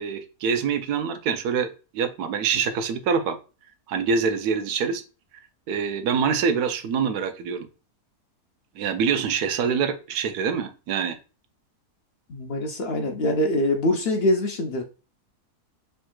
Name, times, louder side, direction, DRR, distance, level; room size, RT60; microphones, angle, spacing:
voice 1, 0.0-3.4 3.9-5.0 5.7-7.7 8.8-11.2, right 6 dB, 80° right, 9 dB, 1.1 m, -25 dB
voice 2, 12.3-14.8, left 1 dB, 65° left, 4 dB, 0.6 m, -24 dB
4.4 x 3.4 x 2.2 m, 0.32 s
omnidirectional pair, 1.7 m